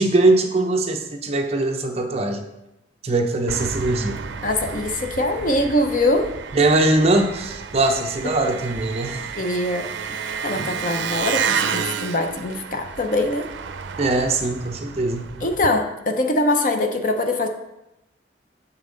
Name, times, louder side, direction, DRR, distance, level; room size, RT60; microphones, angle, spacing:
voice 1, 0.0-2.4 3.0-4.2 6.5-9.3 10.6-10.7 14.0-15.3, right 2 dB, 35° right, 4 dB, 0.6 m, -21 dB
Engine, 3.5-15.7, right 6 dB, 80° right, 0.5 m, -31 dB
voice 2, 4.4-6.3 8.2-8.3 9.4-9.9 10.2-13.5 15.4-17.5, left 1 dB, 45° left, 5 dB, 0.6 m, -23 dB
6.9 x 5.5 x 3.8 m, 0.92 s
head